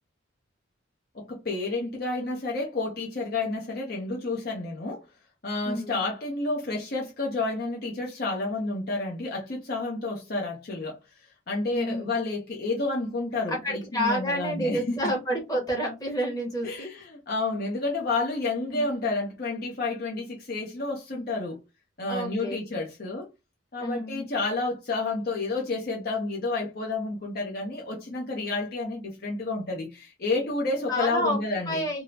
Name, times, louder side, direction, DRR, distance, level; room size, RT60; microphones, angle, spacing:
voice 1, 1.1-5.0 5.4-11.0 11.5-15.0 16.6-21.6 22.0-23.3 23.7-31.9, left 3 dB, 55° left, 0.7 m, -30 dB
voice 2, 5.6-6.0 11.7-12.1 13.5-16.9 18.7-18.9 22.1-22.6 23.8-24.2 30.9-31.4 31.7-32.0, equal, 20° left, 1.1 m, -29 dB
3.6 x 2.0 x 2.7 m
head